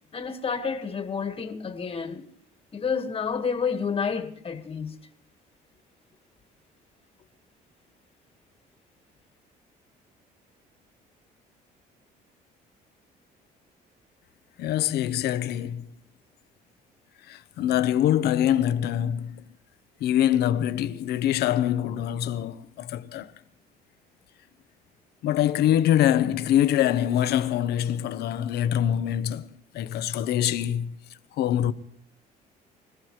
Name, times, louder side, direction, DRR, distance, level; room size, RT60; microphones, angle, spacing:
voice 1, 0.1-2.3 2.7-5.0, left 6 dB, 35° left, 1.6 m, -30 dB
voice 2, 14.6-15.9 17.3-19.5 20.0-23.3 25.2-30.9 31.4-31.7, left 11 dB, 75° left, 0.9 m, -24 dB
25.0 x 15.0 x 3.2 m
cardioid pair, 110°, 17 cm